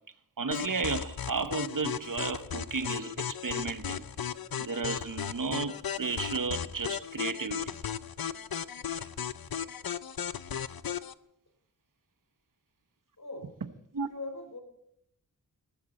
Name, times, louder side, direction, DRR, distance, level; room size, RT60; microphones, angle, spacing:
voice 1, 0.4-4.0 4.6-7.7 13.9-14.1, right 4 dB, 65° right, 1.0 m, -33 dB
sound 1, 0.5-11.1, left 8 dB, 75° left, 0.7 m, -36 dB
voice 2, 13.2-13.5 14.0-14.6, left 2 dB, 60° left, 4.2 m, -41 dB
17.0 x 14.5 x 4.2 m
wide cardioid pair, 70°, 36 cm